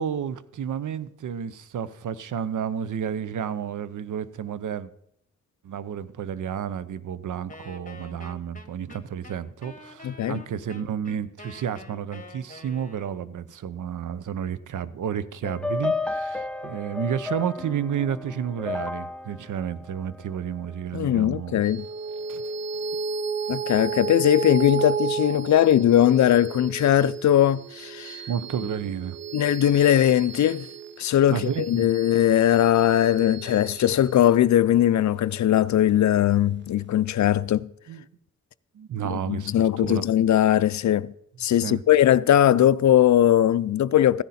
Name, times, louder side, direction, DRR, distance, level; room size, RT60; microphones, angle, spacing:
voice 1, 0.0-4.9 5.6-21.6 22.3-22.4 28.3-29.2 31.3-31.9 37.9-38.0 38.7-40.0 41.5-41.8, right 8 dB, 80° right, 0.7 m, -31 dB
Wind instrument woodwind instrument, 7.5-13.3, left 2 dB, 25° left, 1.5 m, -46 dB
voice 2, 10.0-10.4 20.9-21.8 23.5-28.2 29.3-30.7 31.0-37.7 39.1-41.1 41.4-44.2, left 11 dB, 65° left, 0.5 m, -20 dB
sound 1, 15.4-20.8, left 3 dB, 5° left, 0.8 m, -32 dB
sound 2, 21.6-36.4, right 6 dB, 35° right, 0.8 m, -34 dB
15.0 x 10.0 x 4.2 m
cardioid pair, 55°, 31 cm